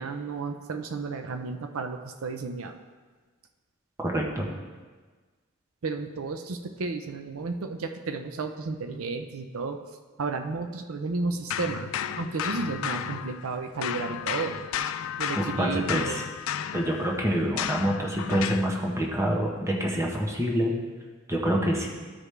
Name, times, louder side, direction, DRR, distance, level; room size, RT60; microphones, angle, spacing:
voice 1, 0.0-2.8 5.8-9.8 10.2-14.6 15.2-16.2, right 4 dB, 75° right, 6 dB, 0.5 m, -33 dB
voice 2, 4.0-4.5 15.4-16.2 16.7-20.7 21.3-21.9, equal, 15° right, -1 dB, 0.9 m, -26 dB
sound 1, 11.5-13.6 13.8-18.7, left 9 dB, 65° left, 0.3 m, -33 dB
13.5 x 4.9 x 3.3 m, 1.4 s
head